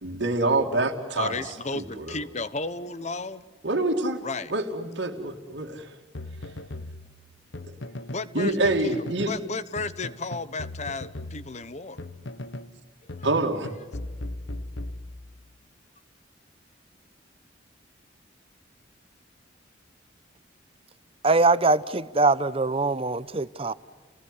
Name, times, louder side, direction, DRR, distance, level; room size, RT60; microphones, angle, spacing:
voice 1, 0.0-1.4 1.7-2.2 3.6-4.2 4.5-5.9 7.7-7.8 8.3-9.3 13.2-13.8, right 2 dB, 65° right, 2.4 m, -26 dB
voice 2, 1.2-3.4 4.2-4.5 8.1-12.0, left 3 dB, 35° left, 1.0 m, -33 dB
sound 1, 6.1-8.3 8.6-9.4 9.8-12.8 13.1-15.5, left 1 dB, 70° left, 1.2 m, -38 dB
voice 3, 21.2-23.7, right 3 dB, 30° right, 0.8 m, -22 dB
30.0 x 19.5 x 9.8 m
head